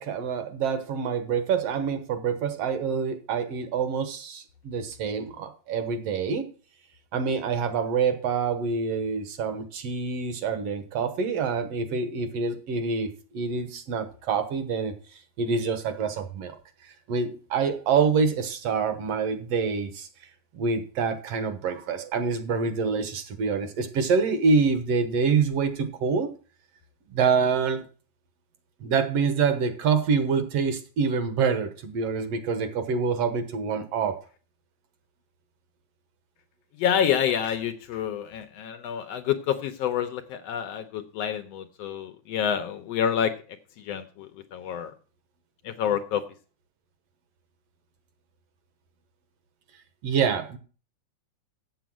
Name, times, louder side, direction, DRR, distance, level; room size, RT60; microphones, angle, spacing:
voice 1, 0.0-6.4 7.1-14.9 15.4-16.6 17.1-20.1 20.5-26.3 27.1-27.8 28.8-34.2 50.0-50.6, right 5 dB, 65° right, 9 dB, 2.0 m, -26 dB
voice 2, 36.8-43.3 43.8-44.9 45.6-46.2, left 9 dB, 70° left, 8 dB, 1.7 m, -28 dB
8.0 x 7.9 x 6.2 m, 0.37 s
omnidirectional pair, 3.4 m